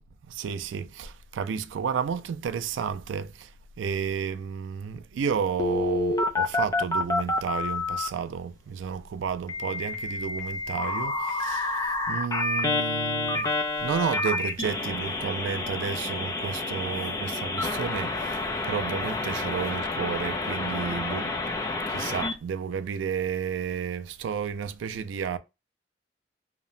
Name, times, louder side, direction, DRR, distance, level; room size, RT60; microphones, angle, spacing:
voice 1, 0.3-3.5 3.8-25.4, right 7 dB, 75° right, 0.3 m, -32 dB
Telephone, 5.6-8.1 9.5-22.3, left 2 dB, 20° left, 0.3 m, -29 dB
2.8 x 2.1 x 2.5 m
head